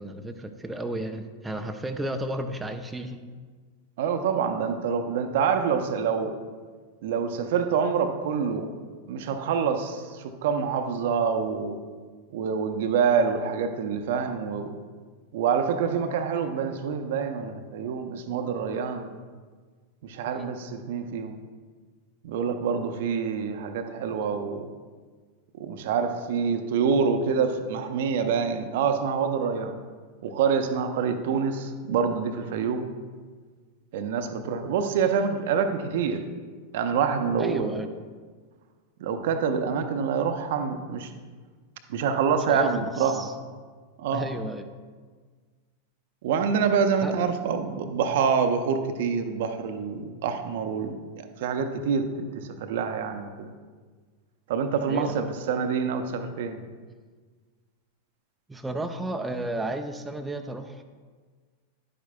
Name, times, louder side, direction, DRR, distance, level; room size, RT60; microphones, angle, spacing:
voice 1, 0.0-3.2 20.3-20.5 37.4-37.9 42.5-43.3 44.1-44.7 47.0-47.1 54.9-55.3 58.5-60.8, right 1 dB, 10° right, 5 dB, 0.5 m, -33 dB
voice 2, 4.0-6.4 7.0-8.7 9.1-11.8 12.3-14.8 15.3-19.1 20.0-21.4 22.2-24.7 25.6-29.7 30.2-32.9 33.9-36.2 36.7-37.7 39.0-41.1 41.9-43.3 44.0-44.3 46.2-53.5 54.5-56.6, right 6 dB, 55° right, 7 dB, 0.6 m, -26 dB
11.0 x 8.7 x 2.2 m, 1.5 s
figure-of-eight pair, 90°, 0 cm